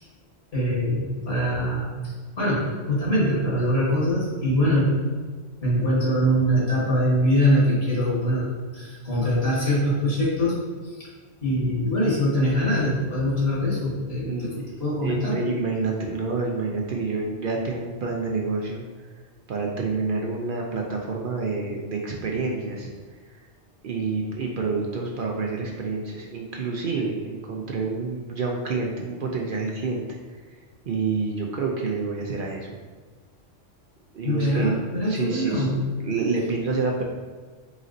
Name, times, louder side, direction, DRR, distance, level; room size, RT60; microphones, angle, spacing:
voice 1, 0.5-5.0 5.6-10.6 10.8-11.1 11.4-14.5 14.8-15.4 34.2-35.9, equal, 55° left, -7 dB, 1.7 m, -23 dB
voice 2, 14.2-14.8 15.0-18.8 19.5-22.9 23.3-23.4 23.8-30.2 30.9-32.7 34.1-34.8 35.1-37.0, right 4 dB, 60° right, 0 dB, 0.5 m, -28 dB
4.0 x 4.0 x 2.5 m, 1.4 s
omnidirectional pair, 1.3 m